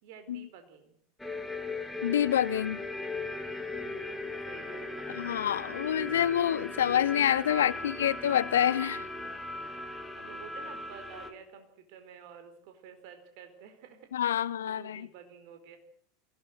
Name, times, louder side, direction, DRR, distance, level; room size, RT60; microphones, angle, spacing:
voice 1, 0.0-1.0 3.6-5.1 7.8-7.9 9.2-15.8, right 7 dB, 55° right, 4.6 m, -52 dB
sound 1, 1.2-11.3, left 2 dB, 5° left, 3.2 m, -38 dB
voice 2, 2.0-2.8 5.1-9.1 14.1-15.1, left 10 dB, 70° left, 0.9 m, -27 dB
23.0 x 17.5 x 7.9 m
figure-of-eight pair, 80°, 0 cm